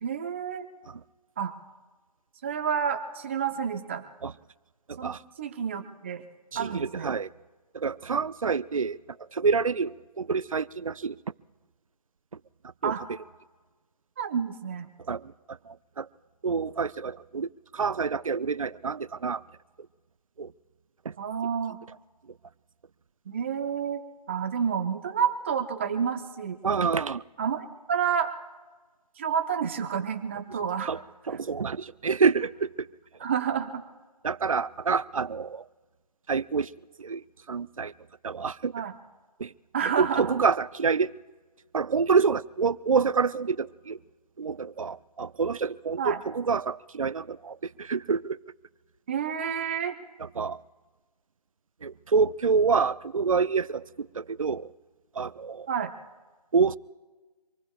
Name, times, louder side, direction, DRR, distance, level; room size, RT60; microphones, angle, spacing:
voice 1, 0.0-0.6 1.4-1.5 2.4-4.0 5.0-6.2 6.5-7.1 12.8-13.0 14.2-14.9 21.2-21.8 23.3-24.0 24.3-26.6 27.4-28.3 29.2-30.9 31.3-31.4 33.2-33.8 38.7-39.0 39.7-40.3 46.0-46.2 49.1-50.0 55.7-55.9, right 7 dB, 20° right, 6 dB, 0.9 m, -29 dB
voice 2, 6.5-7.3 7.7-9.0 9.3-11.2 12.8-12.9 15.1-15.2 15.7-16.1 16.4-17.5 17.7-19.4 20.4-20.5 21.1-21.2 26.6-27.2 30.9-31.0 31.3-32.7 34.2-35.6 36.3-36.7 37.0-37.9 38.2-38.7 39.4-39.5 40.0-41.1 41.7-44.0 44.4-48.4 50.4-50.6 51.8-54.7 55.2-55.7 56.5-56.8, right 5 dB, 55° right, 18 dB, 0.6 m, -27 dB
26.0 x 20.0 x 2.4 m, 1.3 s
figure-of-eight pair, 165°, 21 cm